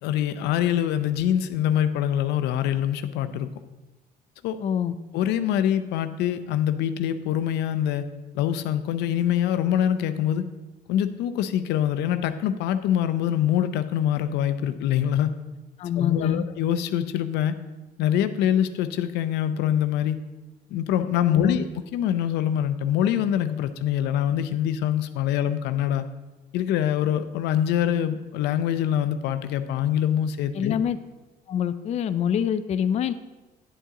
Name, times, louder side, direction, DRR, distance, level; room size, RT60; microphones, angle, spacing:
voice 1, 0.0-3.5 4.4-4.6 5.1-8.1 8.3-10.4 10.9-15.3 16.0-17.6 18.0-20.2 20.7-26.1 26.5-30.8, left 10 dB, 85° left, 11 dB, 0.6 m, -24 dB
voice 2, 4.6-4.9 15.8-16.4 21.3-21.6 30.5-31.0 31.5-33.1, left 8 dB, 40° left, 11 dB, 0.4 m, -25 dB
9.9 x 8.2 x 3.7 m, 1.1 s
cardioid pair, 110°, 17 cm